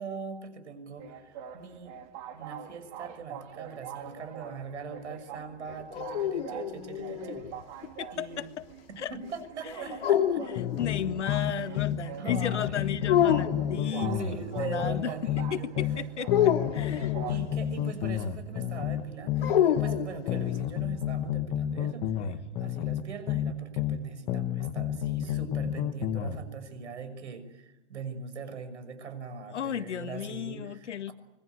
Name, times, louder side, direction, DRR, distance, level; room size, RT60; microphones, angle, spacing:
voice 1, 0.0-1.9 2.3-7.4 8.1-8.4 8.9-10.5 12.2-13.0 13.8-15.7 17.3-31.1, right 5 dB, 80° right, 10 dB, 6.3 m, -41 dB
sound 1, 1.0-17.5, right 9 dB, 30° right, 2.3 m, -44 dB
sound 2, 5.7-7.5 10.0-11.2 13.1-13.9 16.3-17.4 19.4-20.6, left 10 dB, 55° left, 3.0 m, -27 dB
voice 2, 7.8-8.5 9.0-9.1 9.8-10.0 10.8-14.3 14.5-15.1 15.5-17.2 22.2-22.4 25.7-25.8 29.5-31.1, left 9 dB, 85° left, 10 dB, 1.9 m, -35 dB
sound 3, 10.6-12.0 12.3-16.0 16.3-20.0 20.3-24.0 24.3-26.4, left 10 dB, 20° left, 1.2 m, -30 dB
25.5 x 22.0 x 9.3 m, 1.0 s
hypercardioid pair, 160°, 34 cm